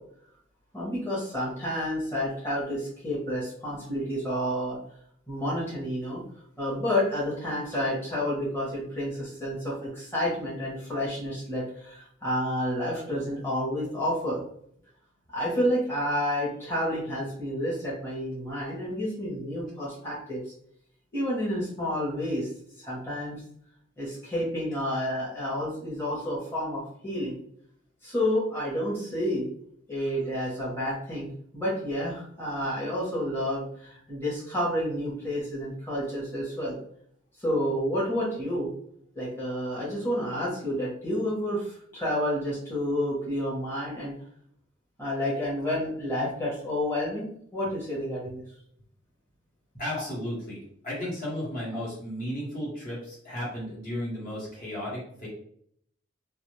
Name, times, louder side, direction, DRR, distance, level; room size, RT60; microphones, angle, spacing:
voice 1, 0.7-4.8 5.3-6.2 6.6-14.4 15.3-20.4 21.1-22.5 22.8-23.4 24.0-27.4 28.0-29.5 29.9-31.3 31.5-36.8 37.4-38.7 39.1-44.1 45.0-47.3 47.5-48.4, equal, 10° left, -8 dB, 0.9 m, -30 dB
voice 2, 49.8-55.3, equal, 45° left, -5 dB, 1.2 m, -34 dB
2.4 x 2.4 x 3.1 m, 0.67 s
head